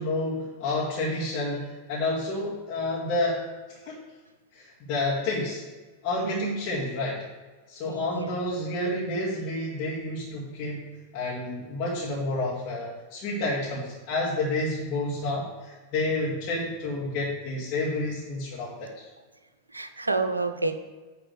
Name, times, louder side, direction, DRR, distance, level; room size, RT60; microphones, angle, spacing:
voice 1, 0.0-3.4 3.7-4.0 4.5-5.6 6.0-7.2 7.7-10.9 11.1-19.0, left 2 dB, 40° left, -7 dB, 1.9 m, -30 dB
voice 2, 6.2-6.6 7.8-8.4 19.7-20.8, right 3 dB, 80° right, 9 dB, 0.6 m, -29 dB
9.2 x 3.6 x 6.3 m, 1.3 s
figure-of-eight pair, 90°, 0 cm